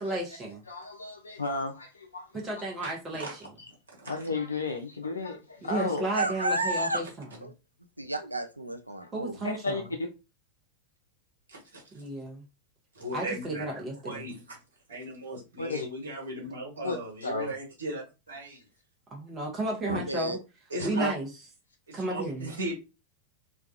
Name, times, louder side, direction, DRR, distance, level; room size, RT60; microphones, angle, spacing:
voice 1, 0.0-0.6 2.3-3.5 5.6-7.4 9.1-9.8 11.9-12.4 13.1-14.3 19.1-20.4 20.8-21.3 21.9-22.5, right 1 dB, 25° right, 0.7 m, -33 dB
voice 2, 0.7-2.4 3.2-3.3 3.6-3.7 4.1-6.0 9.4-10.1 15.6-15.9 16.8-17.0 17.2-17.5 18.5-18.6, left 3 dB, 75° left, 0.3 m, -33 dB
voice 3, 6.1-7.0 7.4-7.5 8.0-9.4 19.9-20.4, right 1 dB, 85° right, 0.3 m, -31 dB
voice 4, 12.9-13.7 14.0-14.3 14.9-18.6 19.9-20.0 20.7-21.1 21.9-22.7, right 1 dB, 70° right, 1.1 m, -36 dB
2.3 x 2.2 x 2.5 m
figure-of-eight pair, 90°, 0 cm